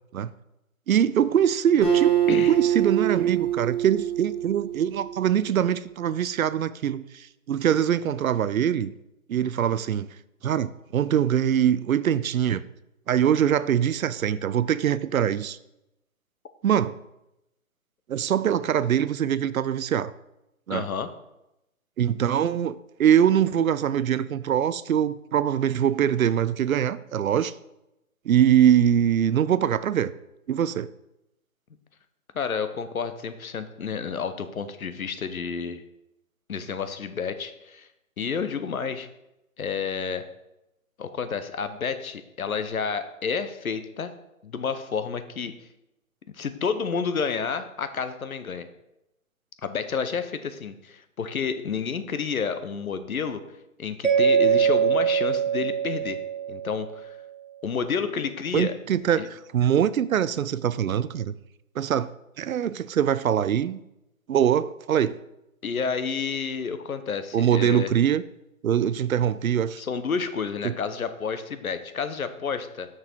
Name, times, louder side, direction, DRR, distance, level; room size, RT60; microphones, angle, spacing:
voice 1, 0.9-8.9 9.3-10.1 10.4-12.6 13.1-15.6 16.6-17.0 18.1-20.1 20.7-20.8 22.0-27.5 28.3-30.1 30.5-30.9 58.5-61.3 61.8-62.1 62.4-63.8 64.3-65.1 67.3-68.2 68.6-69.8 70.6-70.7, right 9 dB, 70° right, 16 dB, 0.5 m, -23 dB
Acoustic guitar, 1.8-5.3, right 10 dB, ahead, 1.8 m, -24 dB
voice 2, 20.7-21.1 32.3-35.8 36.5-37.9 38.2-39.1 39.6-40.2 41.0-44.1 44.4-45.5 46.4-48.7 49.6-53.4 53.8-56.2 56.5-57.1 57.6-58.7 59.2-59.3 65.6-67.9 69.8-72.9, left 6 dB, 75° left, 10 dB, 1.0 m, -30 dB
Mallet percussion, 54.0-57.0, right 7 dB, 55° right, 1.4 m, -23 dB
6.2 x 6.1 x 4.5 m, 0.88 s
hypercardioid pair, 155°, 43 cm